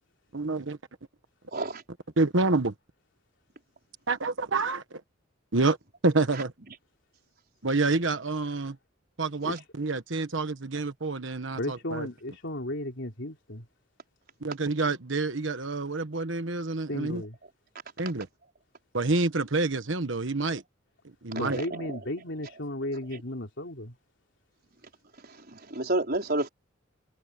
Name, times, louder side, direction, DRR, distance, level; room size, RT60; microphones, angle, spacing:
voice 1, 0.3-0.8 2.2-2.7 4.1-5.0 5.5-5.8 6.0-6.5 7.6-8.8 9.2-12.1 14.4-17.2 18.0-18.3 18.9-20.6 21.2-21.6, right 3 dB, 65° right, 1.3 m, -28 dB
voice 2, 1.5-1.8 6.3-6.4 9.5-9.6 21.3-22.0 23.1-23.2 25.2-26.5, right 2 dB, 50° right, 5.1 m, -31 dB
voice 3, 11.5-13.7 16.9-17.4 21.3-23.9, left 1 dB, 65° left, 3.7 m, -34 dB
head